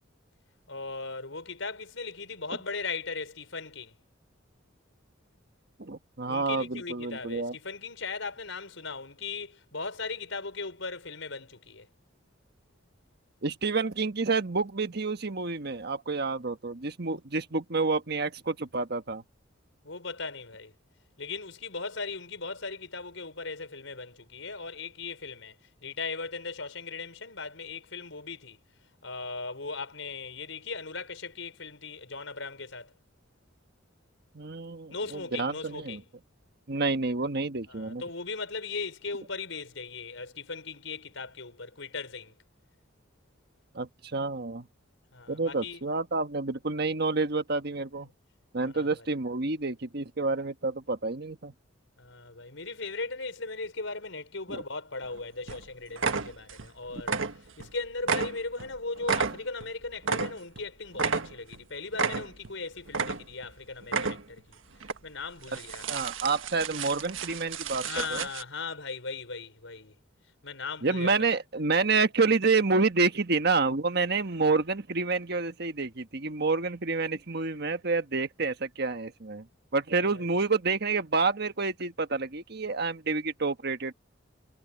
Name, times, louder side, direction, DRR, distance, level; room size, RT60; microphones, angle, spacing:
voice 1, 0.7-4.0 6.3-11.9 19.8-20.7 21.2-25.5 25.8-28.6 29.0-32.9 34.9-36.0 37.7-42.3 45.1-45.8 48.6-49.0 52.0-57.2 57.6-64.6 65.0-65.9 67.8-69.9 70.4-71.1 80.0-80.2, left 4 dB, 80° left, 5.1 m, -38 dB
voice 2, 5.8-7.5 13.4-19.2 34.3-36.0 36.7-38.0 43.7-44.7 45.3-48.1 48.5-51.5 54.5-54.6 56.9-57.0 65.9-68.3 70.8-79.5 79.7-83.9, right 4 dB, 55° right, 1.4 m, -28 dB
sound 1, 55.0-55.2 55.5-55.6 56.0-56.7 57.0-57.7 58.0-60.6 61.0-61.6 61.9-62.5 62.9-63.5 63.8-64.4 64.8-65.0 65.4-68.4, right 5 dB, 85° right, 1.5 m, -31 dB
head